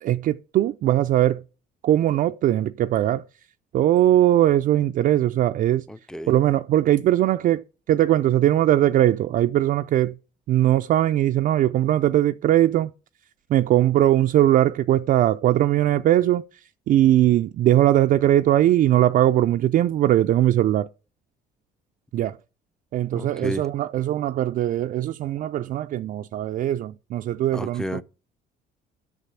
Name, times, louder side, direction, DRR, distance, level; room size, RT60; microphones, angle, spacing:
voice 1, 0.0-1.4 1.8-3.2 3.7-5.9 6.3-10.2 10.5-12.9 13.5-16.4 16.9-20.9 22.1-22.4 22.9-28.0, right 13 dB, 55° right, 0.4 m, -20 dB
voice 2, 5.9-6.3 23.1-23.7 27.5-28.0, equal, 5° left, 0.5 m, -32 dB
8.2 x 6.6 x 6.9 m
cardioid pair, 110°, 17 cm